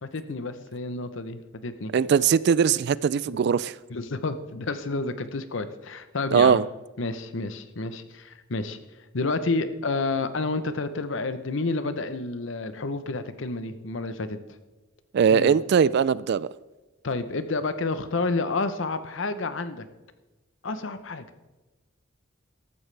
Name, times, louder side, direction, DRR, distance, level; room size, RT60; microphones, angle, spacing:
voice 1, 0.0-1.9 3.3-3.4 3.9-6.6 7.0-8.8 9.1-14.4 15.3-15.6 17.0-19.9 20.6-21.2, left 3 dB, 65° left, 0.8 m, -30 dB
voice 2, 1.9-3.7 6.3-6.6 15.1-16.5, right 7 dB, 55° right, 0.3 m, -20 dB
14.0 x 12.5 x 3.3 m
head